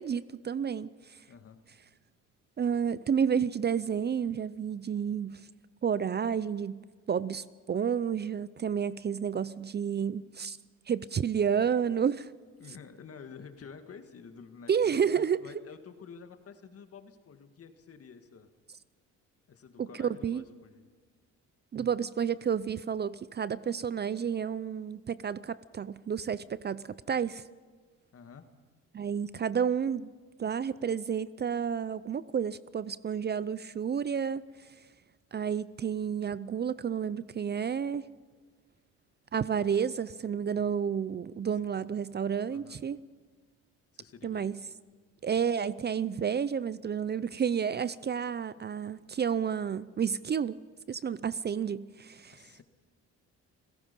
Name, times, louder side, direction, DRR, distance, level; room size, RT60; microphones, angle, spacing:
voice 1, 0.0-1.2 2.6-5.5 5.8-6.8 7.1-10.6 10.9-12.3 14.7-15.4 19.8-20.4 21.7-27.4 28.9-30.1 30.4-34.4 35.3-38.0 39.3-43.0 44.2-44.6 45.2-50.6 50.9-52.5, right 7 dB, 35° right, 0.5 m, -30 dB
voice 2, 1.3-1.6 12.6-18.5 19.5-20.9 28.1-28.5 41.7-41.9 42.5-42.8 43.9-44.5 52.4-52.6, left 6 dB, 50° left, 1.9 m, -50 dB
30.0 x 17.0 x 5.4 m
cardioid pair, 90°, 30 cm